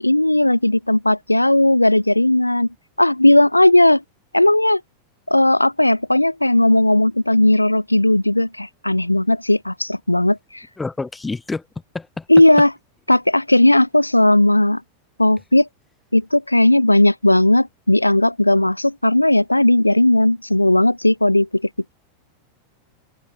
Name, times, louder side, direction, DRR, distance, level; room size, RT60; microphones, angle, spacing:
voice 1, 0.0-2.7 3.0-4.0 4.3-4.8 5.3-10.7 12.3-12.7 13.1-14.8 15.2-15.7 16.1-21.6, left 1 dB, 85° left, 1.5 m, -16 dB
voice 2, 10.8-11.6 11.9-12.2, left 3 dB, 10° left, 5.9 m, -28 dB
figure-of-eight pair, 90°, 0 cm